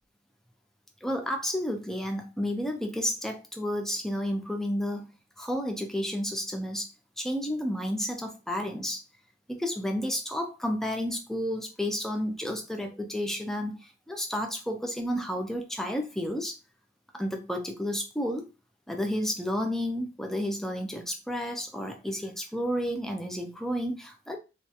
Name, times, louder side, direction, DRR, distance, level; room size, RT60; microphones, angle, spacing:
voice 1, 1.0-5.1 5.4-6.9 7.2-9.0 9.5-16.6 17.1-18.5 18.9-24.4, equal, ahead, 3 dB, 0.3 m, -31 dB
2.2 x 2.1 x 2.8 m, 0.29 s
head